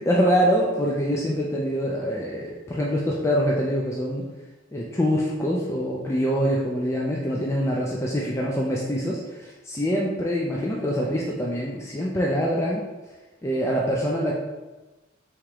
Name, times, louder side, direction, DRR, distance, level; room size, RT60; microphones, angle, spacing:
voice 1, 0.0-4.2 4.7-12.8 13.4-14.3, equal, 15° left, -3 dB, 0.4 m, -24 dB
4.8 x 3.6 x 2.9 m, 1.1 s
head